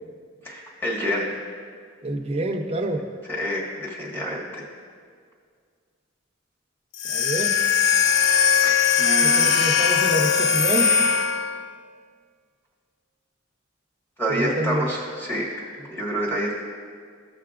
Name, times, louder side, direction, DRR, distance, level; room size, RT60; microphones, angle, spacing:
voice 1, 0.4-1.3 3.2-4.6 8.5-9.5 14.2-16.6, equal, 10° left, -4 dB, 1.6 m, -28 dB
voice 2, 2.0-3.0 7.1-7.6 9.2-11.0 14.3-14.9, right 1 dB, 30° right, 4 dB, 0.6 m, -27 dB
sound 1, 6.9-11.7, left 7 dB, 60° left, 0.4 m, -20 dB
15.0 x 5.8 x 2.5 m, 2.1 s
head